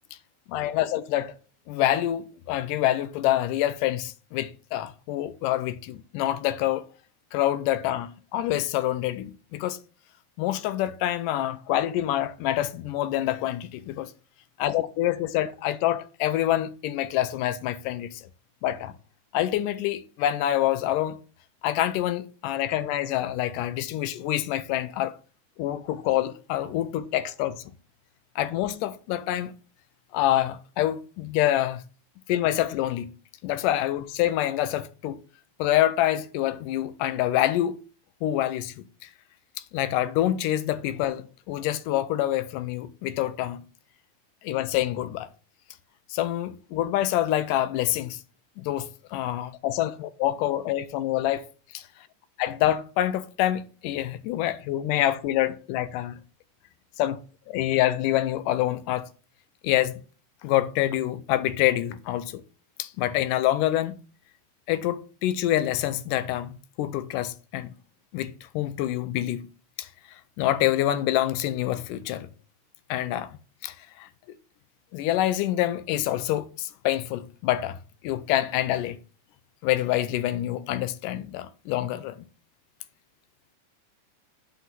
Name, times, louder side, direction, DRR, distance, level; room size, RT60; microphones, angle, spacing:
voice 1, 0.5-1.4 1.7-6.9 7.3-9.8 10.4-14.1 14.6-18.2 18.6-18.9 19.3-21.2 21.6-25.2 25.6-27.6 28.4-29.5 30.1-31.8 32.3-33.1 33.4-35.2 35.6-37.8 38.2-39.1 39.7-43.6 44.4-45.3 46.1-48.2 48.6-51.5 52.4-56.2 57.0-59.1 59.6-60.0 60.4-62.4 62.8-64.0 64.7-67.7 68.1-69.5 69.8-72.3 72.9-73.4 73.6-74.1 74.9-77.8 78.0-79.0 79.6-82.3, left 13 dB, 80° left, 2.2 m, -26 dB
8.4 x 4.0 x 5.9 m
omnidirectional pair, 3.8 m